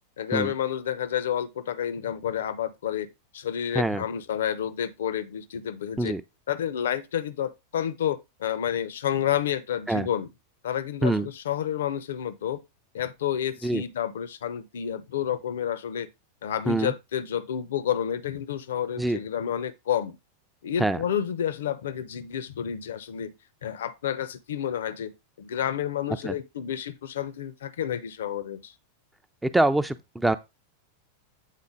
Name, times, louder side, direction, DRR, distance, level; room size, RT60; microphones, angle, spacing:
voice 1, 0.2-3.1 3.3-6.1 6.5-10.3 10.6-12.6 12.9-16.1 16.4-20.2 20.6-23.3 23.6-28.7, left 9 dB, 60° left, 0.7 m, -30 dB
voice 2, 29.4-30.4, right 2 dB, 5° right, 0.5 m, -24 dB
8.4 x 3.9 x 3.6 m
figure-of-eight pair, 90°, 0 cm